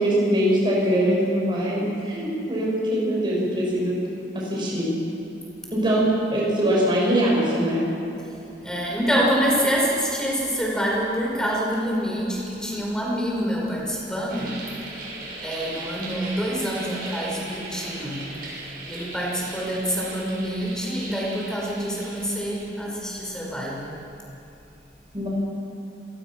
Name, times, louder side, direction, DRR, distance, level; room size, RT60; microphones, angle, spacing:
voice 1, 0.0-3.9 4.3-4.9 5.7-7.8 25.1-25.3, right 1 dB, 25° right, -5 dB, 6.6 m, -22 dB
voice 2, 8.6-14.6 15.4-18.3 18.9-24.0, equal, 5° left, -3 dB, 5.1 m, -26 dB
sound 1, 14.3-22.6, right 2 dB, 55° right, 6.6 m, -38 dB
26.0 x 20.0 x 6.2 m, 3.0 s
head